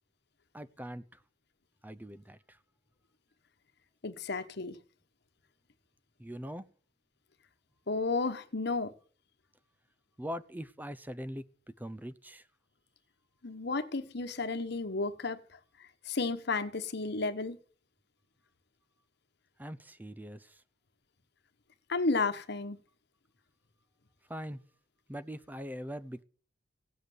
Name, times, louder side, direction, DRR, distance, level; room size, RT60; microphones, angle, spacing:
voice 1, 0.5-1.2 1.8-2.6 6.2-6.7 10.2-12.5 19.6-20.6 24.3-24.6 25.1-26.2, equal, 10° right, 0.6 m, -42 dB
voice 2, 4.0-4.8 7.9-8.9 13.4-15.6 16.0-17.6 21.9-22.8, left 3 dB, 60° left, 1.3 m, -32 dB
16.5 x 7.8 x 7.9 m
head